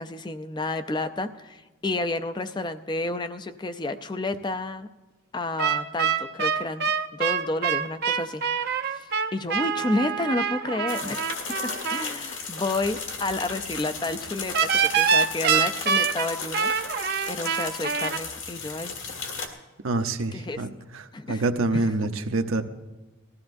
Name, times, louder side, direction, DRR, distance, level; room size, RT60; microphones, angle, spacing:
voice 1, 0.0-4.9 5.3-8.4 8.9-11.4 11.9-16.7 17.3-19.1 20.3-20.6 21.1-21.4 21.7-22.1, left 2 dB, 20° left, 9 dB, 0.4 m, -30 dB
sound 1, 5.6-12.1 14.5-18.2, right 6 dB, 50° right, 0.6 m, -25 dB
sound 2, 10.9-19.5, left 4 dB, 65° left, 1.8 m, -35 dB
voice 2, 19.8-22.6, right 2 dB, 80° right, 7 dB, 0.8 m, -27 dB
20.0 x 14.0 x 2.6 m, 1.2 s
head